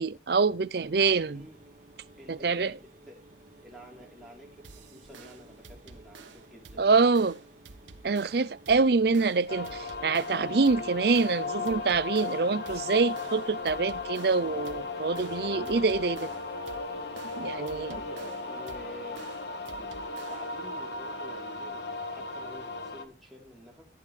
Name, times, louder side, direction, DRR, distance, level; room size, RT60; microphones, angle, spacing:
voice 1, 0.0-1.4 2.3-2.8 6.8-7.4 8.0-16.3 17.3-17.9, right 4 dB, 60° right, 0.5 m, -25 dB
Mechanisms, 0.8-17.0, right 1 dB, 40° right, 2.4 m, -56 dB
voice 2, 2.2-3.2 3.6-7.0 17.6-19.3 19.7-23.9, left 1 dB, ahead, 3.7 m, -49 dB
sound 1, 4.6-20.6, right 4 dB, 85° right, 1.2 m, -51 dB
sound 2, 9.5-23.0, left 3 dB, 65° left, 1.5 m, -36 dB
14.5 x 9.5 x 3.3 m
head